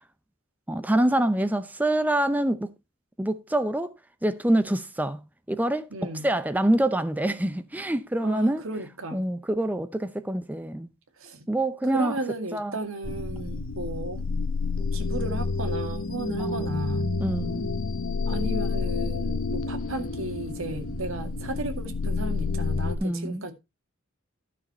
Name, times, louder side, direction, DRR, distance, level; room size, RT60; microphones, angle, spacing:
voice 1, 0.7-2.7 3.2-3.9 4.2-5.2 5.5-8.6 9.1-10.9 11.5-12.2 12.5-12.7 16.4-16.8 17.2-17.7 23.0-23.4, right 1 dB, 10° right, 0.6 m, -26 dB
voice 2, 5.9-6.3 8.2-9.2 11.2-11.5 11.9-14.3 14.8-17.1 18.3-23.5, right 2 dB, 70° right, 2.1 m, -34 dB
sound 1, 13.0-23.0, left 4 dB, 70° left, 0.9 m, -29 dB
12.5 x 6.7 x 4.3 m
head